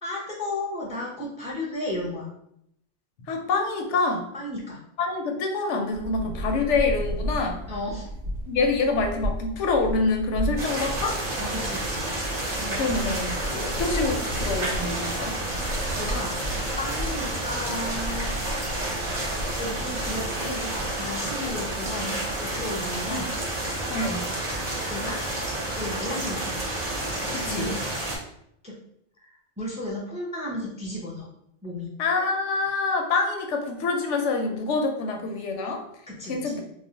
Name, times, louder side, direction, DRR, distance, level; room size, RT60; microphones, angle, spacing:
voice 1, 0.0-2.3 4.3-4.8 7.7-8.1 11.4-12.1 12.6-13.0 16.0-16.4 16.8-18.3 19.6-20.7 21.0-22.2 22.6-23.3 24.9-25.2 25.8-26.7 27.4-27.8 28.6-28.7 29.6-31.3 31.6-31.9 36.1-36.6, left 1 dB, 10° right, -5 dB, 0.4 m, -33 dB
voice 2, 3.2-4.3 5.0-7.6 8.5-11.2 12.8-15.4 23.1-23.2 23.9-24.3 27.3-27.8 32.0-35.8 36.3-36.6, left 3 dB, 85° left, 3 dB, 0.9 m, -26 dB
sound 1, 5.9-23.3, equal, 75° right, 0.9 m, -35 dB
sound 2, 10.6-28.2, right 1 dB, 40° right, 0.7 m, -30 dB
2.4 x 2.0 x 3.8 m, 0.75 s
omnidirectional pair, 1.2 m